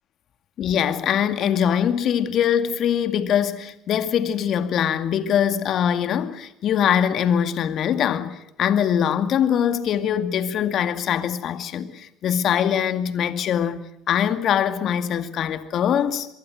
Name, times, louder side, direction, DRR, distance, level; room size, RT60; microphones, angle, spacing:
voice 1, 0.6-13.8 14.1-16.3, left 9 dB, 55° left, 2.2 m, -22 dB
24.5 x 22.5 x 7.9 m
hypercardioid pair, 60°, 0 cm